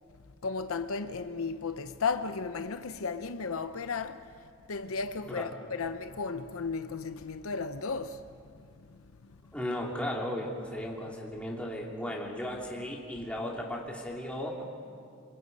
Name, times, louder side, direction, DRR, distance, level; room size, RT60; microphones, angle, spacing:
voice 1, 0.4-4.3 4.7-8.3 8.8-9.4, left 4 dB, 75° left, 0.7 m, -34 dB
voice 2, 9.5-14.8, left 1 dB, 5° left, 3.1 m, -36 dB
28.0 x 26.5 x 5.5 m
head